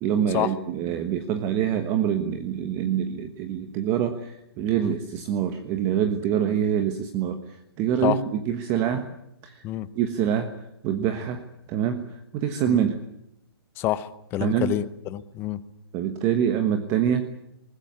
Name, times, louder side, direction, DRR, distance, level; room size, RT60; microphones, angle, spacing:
voice 1, 0.0-9.1 9.4-9.6 9.9-10.6 10.8-11.4 11.7-13.0 14.4-14.8 15.9-17.3, right 9 dB, 20° right, 8 dB, 1.3 m, -25 dB
voice 2, 13.8-15.6, left 13 dB, 15° left, 14 dB, 0.9 m, -27 dB
20.0 x 20.0 x 9.6 m, 0.80 s
hypercardioid pair, 160°, 13 cm